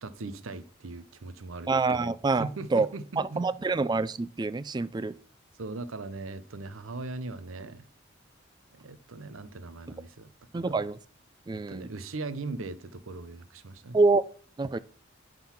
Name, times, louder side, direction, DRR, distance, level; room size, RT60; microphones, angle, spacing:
voice 1, 0.0-3.4 5.6-7.9 8.7-10.8 11.5-14.0, right 3 dB, 85° right, 0.7 m, -39 dB
voice 2, 1.7-2.9 3.2-5.2 10.5-11.0 11.5-11.9 13.9-14.2 14.6-14.8, right 3 dB, 20° right, 0.3 m, -26 dB
10.0 x 3.9 x 5.8 m
head